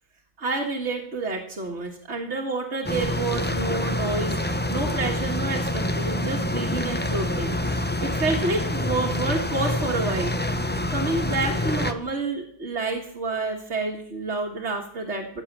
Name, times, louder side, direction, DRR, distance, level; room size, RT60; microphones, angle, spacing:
voice 1, 0.4-10.3 10.9-15.4, right 3 dB, 70° right, -3 dB, 1.9 m, -29 dB
sound 1, 2.8-11.9, left 1 dB, 10° left, 0.7 m, -26 dB
15.0 x 8.2 x 7.3 m, 0.68 s
omnidirectional pair, 1.2 m